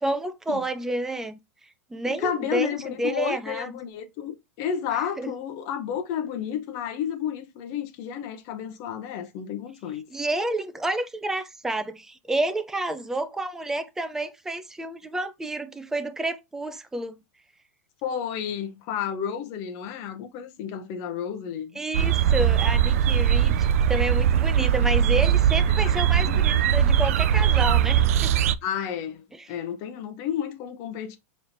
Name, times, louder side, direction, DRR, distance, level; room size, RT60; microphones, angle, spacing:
voice 1, 0.0-1.4 1.9-3.8 5.2-5.3 10.1-17.2 21.8-28.3 29.3-29.5, right 1 dB, 5° right, 0.4 m, -30 dB
voice 2, 2.1-10.1 18.0-21.8 25.7-25.8 26.2-26.6 28.6-31.2, left 8 dB, 40° left, 0.8 m, -31 dB
sound 1, 21.9-28.5, right 9 dB, 70° right, 0.3 m, -20 dB
4.8 x 3.1 x 2.6 m
supercardioid pair, 145°, 8 cm